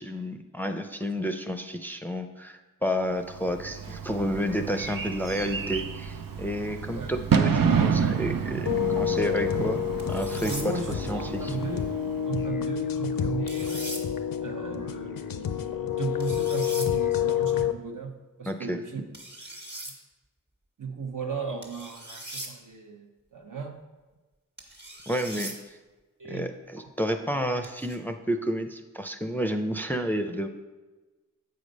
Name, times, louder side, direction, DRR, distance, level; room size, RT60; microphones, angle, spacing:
voice 1, 0.0-8.7 9.0-11.6 18.5-18.8 25.1-25.8 26.2-30.5, equal, 5° left, 6 dB, 0.5 m, -31 dB
Bird / Fireworks, 3.3-12.5, right 6 dB, 85° right, 0.6 m, -29 dB
sound 1, 8.7-17.7, left 10 dB, 85° left, 0.5 m, -29 dB
sound 2, 10.0-10.7 13.5-14.0 16.2-16.9 19.1-19.9 21.6-22.5 24.6-25.6 27.6-28.0, right 1 dB, 30° right, 1.6 m, -40 dB
voice 2, 10.4-11.9 12.2-13.8 14.4-19.0 20.8-23.8 26.2-26.5, right 4 dB, 70° right, 3 dB, 1.0 m, -36 dB
8.1 x 5.0 x 5.3 m, 1.2 s
wide cardioid pair, 65°, 33 cm